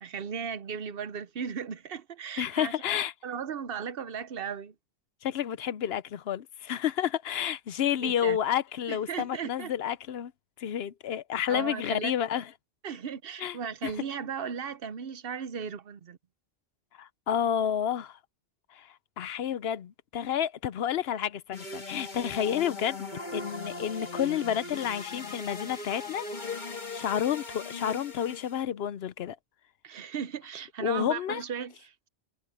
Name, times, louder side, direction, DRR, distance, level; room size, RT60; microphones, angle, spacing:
voice 1, 0.0-2.7 3.2-4.7 8.0-8.4 8.9-9.7 11.5-12.1 12.8-16.2 29.8-32.1, right 7 dB, 60° right, 0.9 m, -36 dB
voice 2, 2.4-3.1 5.2-10.3 10.6-12.5 13.4-13.6 13.8-13.9 17.0-18.2 18.7-18.9 19.2-26.3 26.6-29.4 30.8-31.4, left 9 dB, 70° left, 0.9 m, -30 dB
sound 1, 21.5-28.6, left 3 dB, 45° left, 1.7 m, -39 dB
omnidirectional pair, 1.1 m